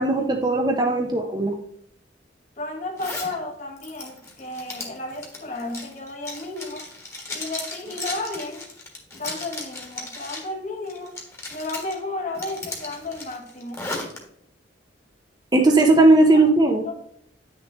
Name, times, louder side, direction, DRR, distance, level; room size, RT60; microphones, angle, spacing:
voice 1, 0.0-1.6 15.5-16.8, right 2 dB, 25° right, 2 dB, 0.7 m, -17 dB
voice 2, 2.6-6.9 7.3-8.7 9.1-11.1 11.5-13.8 16.3-16.4 16.8-16.9, left 2 dB, 40° left, 2 dB, 1.5 m, -33 dB
Zipper (clothing), 3.0-3.3 3.8-10.5 10.9-11.9 12.3-14.2, left 2 dB, 15° left, 1.5 m, -35 dB
9.3 x 6.5 x 3.1 m, 0.71 s
head